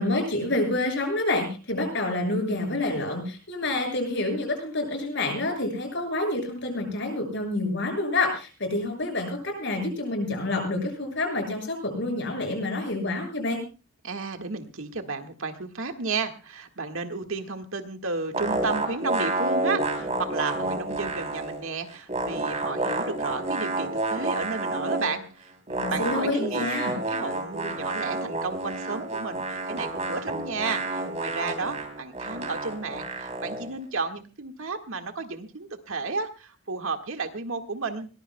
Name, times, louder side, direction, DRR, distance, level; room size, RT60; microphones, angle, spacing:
voice 1, 0.0-13.6 25.8-26.9, left 2 dB, 55° left, 3 dB, 6.6 m, -28 dB
voice 2, 14.0-26.7 26.9-38.1, right 4 dB, 65° right, 5 dB, 1.7 m, -33 dB
sound 1, 18.3-21.6 21.9-25.2 25.7-33.7, right 2 dB, 30° right, 3.1 m, -30 dB
22.0 x 20.0 x 2.2 m, 0.33 s
head